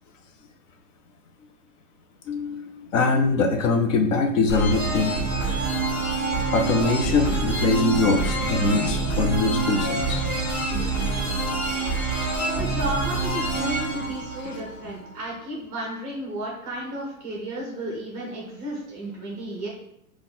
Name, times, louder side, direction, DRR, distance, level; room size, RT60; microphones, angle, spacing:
voice 1, 2.3-5.2 6.5-10.3 14.4-14.6, left 3 dB, 55° left, 4 dB, 0.6 m, -23 dB
sound 1, 4.5-15.1, right 3 dB, 25° left, 1.3 m, -26 dB
voice 2, 12.5-19.7, right 1 dB, 15° right, -3 dB, 0.6 m, -33 dB
4.1 x 2.4 x 3.7 m, 0.76 s
hypercardioid pair, 155°, 46 cm